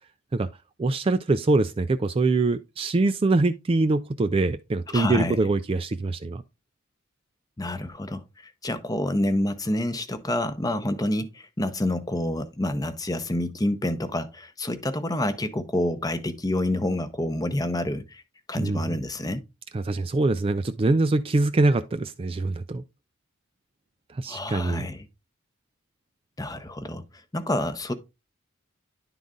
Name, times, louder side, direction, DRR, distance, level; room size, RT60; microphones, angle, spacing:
voice 1, 0.8-6.4 18.6-19.0 19.7-22.8 24.1-24.9, right 2 dB, 25° right, 0.3 m, -24 dB
voice 2, 4.9-5.4 7.6-18.2 18.5-19.4 24.3-25.1 26.4-27.0 27.3-27.9, left 1 dB, 20° left, 0.7 m, -28 dB
10.5 x 3.9 x 3.7 m
head